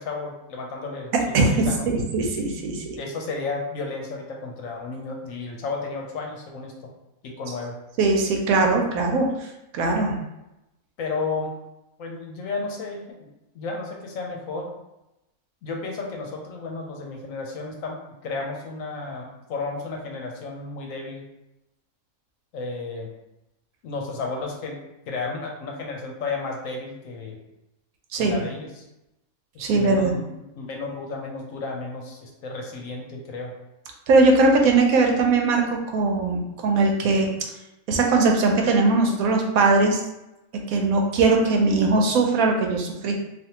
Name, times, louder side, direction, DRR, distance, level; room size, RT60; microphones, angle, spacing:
voice 1, 0.0-1.8 3.0-6.9 7.2-7.8 9.3-9.4 9.8-9.9 11.0-11.6 12.0-13.3 13.5-14.7 15.6-21.3 22.5-23.1 23.8-24.8 25.1-27.4 28.2-28.8 29.5-33.5, left 3 dB, 75° left, 1 dB, 1.0 m, -33 dB
voice 2, 1.3-3.0 8.0-9.3 9.7-10.2 28.1-28.4 29.6-30.2 34.1-35.6 35.9-37.3 37.9-40.0 40.7-43.2, right 3 dB, 85° right, 2 dB, 1.1 m, -20 dB
3.3 x 2.6 x 2.8 m, 0.92 s
omnidirectional pair, 1.5 m